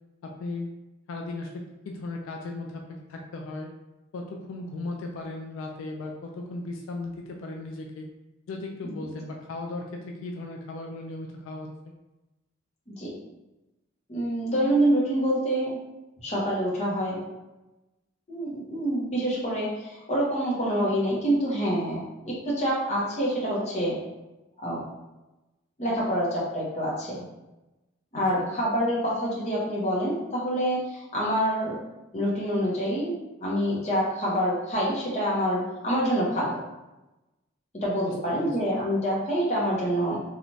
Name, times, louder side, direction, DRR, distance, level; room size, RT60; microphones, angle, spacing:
voice 1, 0.2-0.7 1.1-3.7 4.1-8.1 8.5-11.7 28.4-28.5 38.1-38.5, left 2 dB, 80° left, 1 dB, 0.3 m, -36 dB
voice 2, 14.1-15.8 16.2-17.2 18.3-24.0 24.6-24.8 25.8-27.3 28.1-31.8 32.1-33.2 33.4-36.6 37.7-40.2, equal, 35° left, -6 dB, 0.8 m, -26 dB
3.0 x 2.4 x 2.7 m, 1.0 s
head